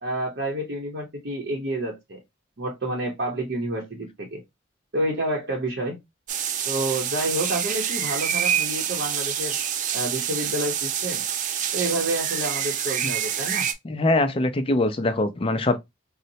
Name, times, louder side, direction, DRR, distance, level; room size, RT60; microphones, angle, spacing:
voice 1, 0.0-2.2 2.6-4.4 4.9-6.0 6.7-9.6 9.9-11.2 11.7-13.7, right 1 dB, 60° right, 0.8 m, -29 dB
sound 1, 6.3-13.7, right 9 dB, 40° right, 0.3 m, -27 dB
voice 2, 13.8-15.8, left 2 dB, 25° left, 0.4 m, -23 dB
4.0 x 2.0 x 2.7 m
head